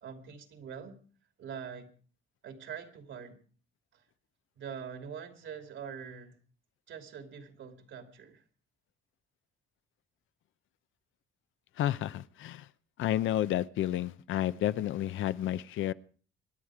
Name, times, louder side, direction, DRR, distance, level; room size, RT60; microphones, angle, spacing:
voice 1, 0.0-1.0 1.4-1.9 2.4-3.4 3.9-4.0 4.6-6.4 6.9-8.4, right 7 dB, 75° right, 2.7 m, -44 dB
voice 2, 11.8-12.6 13.0-15.9, left 12 dB, 80° left, 0.7 m, -31 dB
26.0 x 10.5 x 4.9 m
cardioid pair, 90°, 20 cm